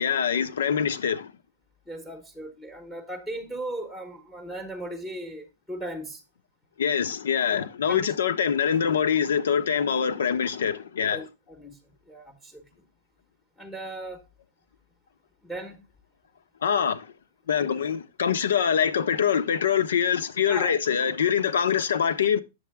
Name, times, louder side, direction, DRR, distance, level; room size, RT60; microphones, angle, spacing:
voice 1, 0.0-1.3 6.8-11.2 16.6-17.1 17.5-22.4, left 7 dB, 85° left, 1.0 m, -24 dB
voice 2, 1.9-6.2 7.9-8.1 11.1-12.6 13.6-14.2 15.4-15.9 20.4-20.8, right 1 dB, 5° left, 1.0 m, -37 dB
8.3 x 7.0 x 3.5 m
hypercardioid pair, 160°, 0 cm